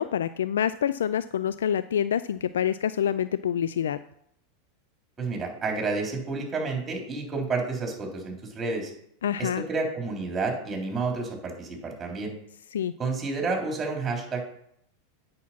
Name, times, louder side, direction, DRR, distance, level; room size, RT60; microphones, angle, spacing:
voice 1, 0.0-4.0 9.2-9.6 12.7-12.9, left 9 dB, 80° left, 14 dB, 0.3 m, -26 dB
voice 2, 5.2-8.9 9.4-12.3 13.0-14.4, right 3 dB, 20° right, 1 dB, 3.5 m, -30 dB
8.4 x 6.1 x 5.8 m, 0.71 s
hypercardioid pair, 100°, 0 cm